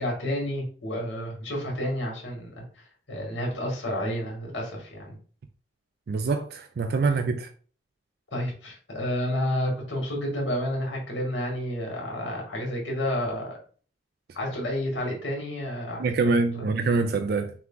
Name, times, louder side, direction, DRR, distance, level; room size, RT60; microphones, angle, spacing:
voice 1, 0.0-2.6 3.1-5.2 8.3-13.5 14.3-16.1 16.6-16.7, left 1 dB, 75° left, 2.0 m, -30 dB
voice 2, 6.1-7.5 16.0-17.5, right 4 dB, 55° right, 0.4 m, -25 dB
5.6 x 2.4 x 3.8 m
head